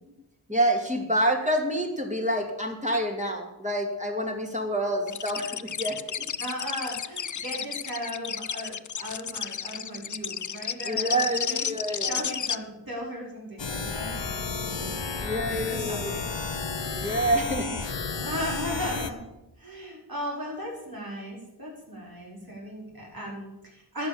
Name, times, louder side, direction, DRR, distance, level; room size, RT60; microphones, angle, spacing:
voice 1, 0.5-6.3 10.8-12.2 15.2-16.2 16.9-17.8, right 1 dB, 15° right, 2 dB, 2.6 m, -27 dB
sound 1, 5.1-12.6, left 7 dB, 45° left, 0.5 m, -32 dB
voice 2, 6.4-11.7 12.1-14.9 15.4-16.3 16.9-17.3 18.2-19.3 19.6-24.1, equal, 55° right, -3 dB, 5.0 m, -36 dB
sound 2, 13.6-19.1, left 4 dB, 80° left, 1.2 m, -32 dB
12.0 x 8.6 x 7.0 m, 0.92 s
wide cardioid pair, 40°, 43 cm